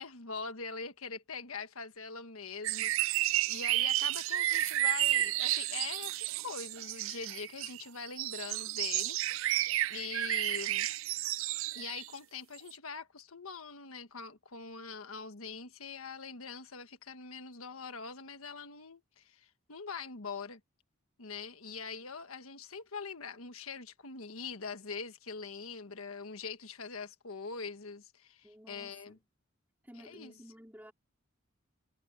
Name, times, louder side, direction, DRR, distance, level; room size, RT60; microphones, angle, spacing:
voice 1, 0.0-9.5 9.9-10.9 11.7-20.6 21.2-29.2 30.0-30.3, left 5 dB, 85° left, 1.4 m, -43 dB
sound 1, 2.6-12.1 12.7-12.8, right 15 dB, 65° right, 0.3 m, -32 dB
voice 2, 28.4-29.2 29.8-30.9, equal, 10° right, 4.9 m, -54 dB
head